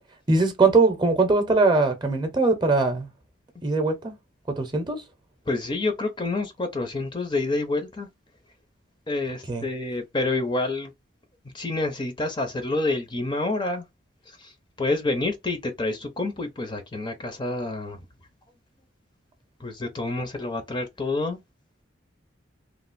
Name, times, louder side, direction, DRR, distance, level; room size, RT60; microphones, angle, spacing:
voice 1, 0.3-3.1 3.6-4.2 4.5-5.0 9.5-9.7, right 3 dB, 25° right, 0.7 m, -21 dB
voice 2, 5.5-8.1 9.1-10.9 11.5-13.9 14.3-14.5 14.8-18.0 19.6-21.4, left 2 dB, 25° left, 0.6 m, -28 dB
3.1 x 2.4 x 2.5 m
head